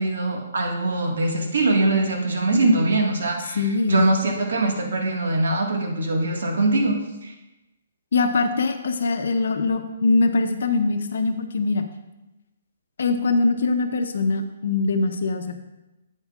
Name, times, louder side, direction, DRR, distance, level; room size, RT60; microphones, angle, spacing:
voice 1, 0.0-7.3, right 2 dB, 80° right, 1 dB, 1.6 m, -22 dB
voice 2, 3.5-4.1 8.1-11.9 13.0-15.6, left 3 dB, 70° left, 7 dB, 0.8 m, -22 dB
9.3 x 8.3 x 2.4 m, 1.0 s
hypercardioid pair, 175°, 0 cm